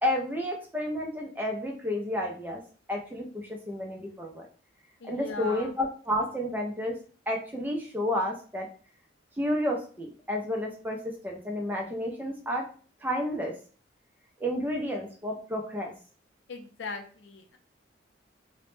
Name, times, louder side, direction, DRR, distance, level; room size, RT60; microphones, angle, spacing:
voice 1, 0.0-2.6 2.9-4.5 5.0-6.9 7.3-8.7 9.4-12.6 13.0-13.5 14.4-15.9, left 1 dB, 10° right, 0 dB, 0.3 m, -31 dB
voice 2, 5.0-5.8 16.5-17.6, left 3 dB, 70° left, 4 dB, 0.4 m, -39 dB
2.1 x 2.0 x 3.0 m, 0.41 s
head